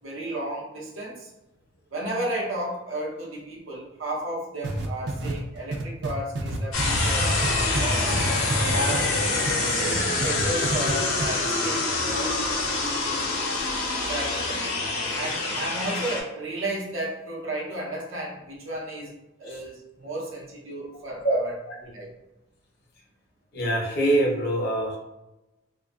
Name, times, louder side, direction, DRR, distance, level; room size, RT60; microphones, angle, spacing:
voice 1, 0.0-1.3 1.9-7.3 7.8-8.2 8.7-9.2 9.7-12.4 14.1-14.6 15.1-19.1 19.4-21.5 21.8-22.1, right 1 dB, 85° right, -3 dB, 0.8 m, -33 dB
sound 1, 4.6-9.6 9.9-10.9 11.2-11.3, right 2 dB, 55° right, 0.4 m, -29 dB
sound 2, 6.7-16.2, left 2 dB, 90° left, 0.6 m, -26 dB
voice 2, 21.2-21.8 23.5-25.0, right 1 dB, 50° left, 0 dB, 0.6 m, -24 dB
2.6 x 2.3 x 2.3 m, 0.95 s
head